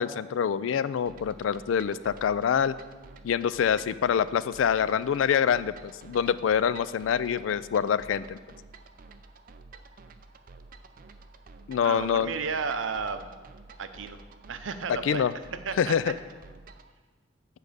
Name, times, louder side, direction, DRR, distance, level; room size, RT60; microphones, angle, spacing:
voice 1, 0.0-2.7 3.2-8.4 11.7-12.3 14.9-15.3 15.8-16.1, left 7 dB, 85° left, 16 dB, 0.3 m, -26 dB
sound 1, 1.1-16.9, right 3 dB, 45° right, 0.5 m, -50 dB
voice 2, 11.8-13.3 13.8-14.2 14.5-15.9, right 5 dB, 85° right, 9 dB, 0.6 m, -33 dB
8.5 x 4.8 x 6.7 m, 1.3 s
head